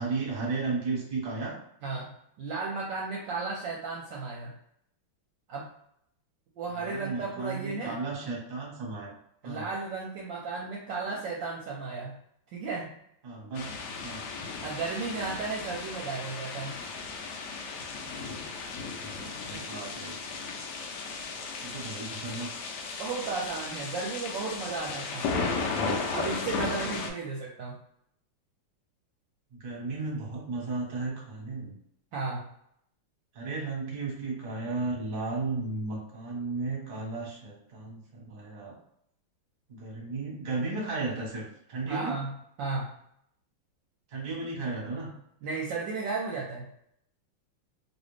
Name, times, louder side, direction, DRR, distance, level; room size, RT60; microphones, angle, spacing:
voice 1, 0.0-1.6 6.8-9.1 9.4-9.6 13.2-13.7 14.0-14.2 19.4-20.2 21.6-22.6 29.6-31.7 33.3-38.8 39.7-41.4 41.7-42.1 44.1-45.1, right 3 dB, 35° right, -3 dB, 0.9 m, -34 dB
voice 2, 1.8-4.5 5.5-5.7 6.6-8.0 9.4-12.2 12.5-12.9 14.6-16.8 23.0-25.6 26.1-27.8 32.1-32.5 41.8-42.9 45.4-46.7, right 4 dB, 70° right, -3 dB, 1.1 m, -34 dB
sound 1, 13.5-27.1, left 4 dB, 85° left, 0.9 m, -35 dB
3.2 x 2.7 x 3.1 m, 0.72 s
omnidirectional pair, 2.4 m